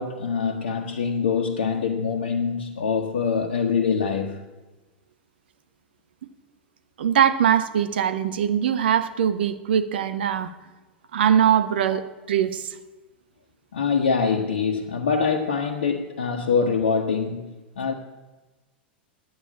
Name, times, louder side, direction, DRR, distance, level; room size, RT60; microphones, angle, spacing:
voice 1, 0.0-4.5 11.9-12.0 13.7-17.9, left 5 dB, 80° left, 1.3 m, -24 dB
voice 2, 7.0-10.5 11.1-12.7, right 9 dB, 75° right, 1.2 m, -22 dB
11.5 x 9.5 x 8.5 m
hypercardioid pair, 95°, 6 cm